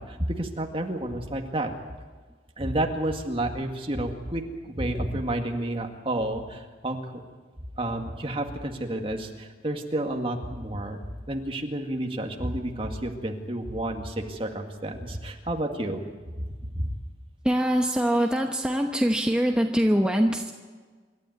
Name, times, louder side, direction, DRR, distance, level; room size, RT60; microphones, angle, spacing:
voice 1, 0.0-1.7 2.6-7.2 7.8-11.0 11.3-16.0 16.4-16.9, right 1 dB, 30° right, 3 dB, 2.1 m, -30 dB
voice 2, 17.4-20.5, equal, 5° right, 2 dB, 1.0 m, -23 dB
27.0 x 13.0 x 9.4 m, 1.5 s
head